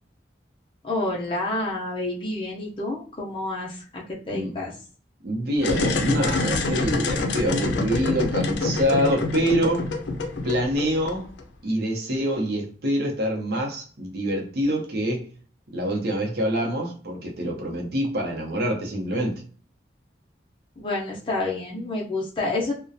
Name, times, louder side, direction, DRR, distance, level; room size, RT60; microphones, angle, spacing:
voice 1, 0.8-4.7 20.8-22.7, left 2 dB, 30° left, 0.5 m, -29 dB
voice 2, 5.2-9.9 10.4-11.3 11.6-15.3 15.7-19.4, equal, 60° right, 0.6 m, -25 dB
sound 1, 5.6-11.4, left 2 dB, 80° left, 0.4 m, -26 dB
2.3 x 2.1 x 2.6 m
head